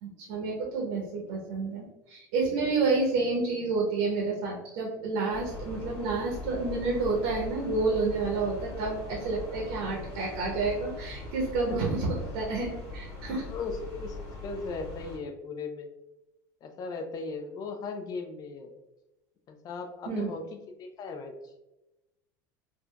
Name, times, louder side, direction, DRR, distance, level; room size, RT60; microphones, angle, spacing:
voice 1, 0.0-13.5 20.0-20.3, right 3 dB, 65° right, -1 dB, 0.8 m, -29 dB
sound 1, 5.3-15.2, left 3 dB, 65° left, 1.4 m, -41 dB
voice 2, 13.2-14.2 14.4-15.9 16.6-18.7 19.5-21.5, left 4 dB, 40° left, 5 dB, 0.5 m, -37 dB
3.7 x 2.3 x 2.2 m, 0.97 s
hypercardioid pair, 90°, 10 cm